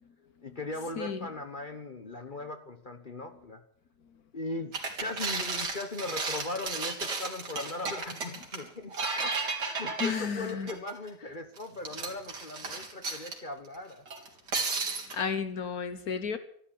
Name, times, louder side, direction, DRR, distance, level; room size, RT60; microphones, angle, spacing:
voice 1, 0.4-3.6 4.3-4.7 5.0-9.4 9.8-14.0, left 2 dB, 35° left, 1.1 m, -39 dB
voice 2, 0.9-1.3 10.0-10.7 15.1-16.4, left 6 dB, 65° left, 1.6 m, -33 dB
sound 1, 4.7-11.1 11.6-13.4 14.1-15.2, right 4 dB, 90° right, 3.2 m, -34 dB
13.0 x 12.5 x 8.9 m
omnidirectional pair, 1.8 m